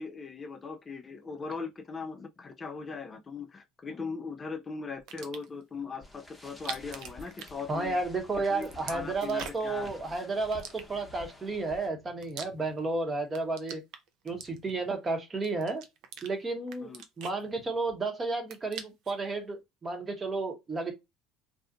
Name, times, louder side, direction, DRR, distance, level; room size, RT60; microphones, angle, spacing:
voice 1, 0.0-8.0 8.5-9.9 10.2-10.3 16.8-17.0, left 4 dB, 25° left, 0.4 m, -39 dB
sound 1, 5.0-5.6 6.5-8.1 8.4-9.8 10.5-11.3 11.9-12.9 13.2-14.9 15.4-16.3 16.7-18.0 18.3-19.2, right 7 dB, 65° right, 0.5 m, -44 dB
sound 2, 6.0-11.9, left 2 dB, ahead, 0.9 m, -50 dB
voice 2, 7.7-13.8 14.2-15.8 16.2-16.9 17.2-20.9, right 3 dB, 25° right, 0.9 m, -32 dB
2.6 x 2.4 x 2.4 m
supercardioid pair, 100°, 0 cm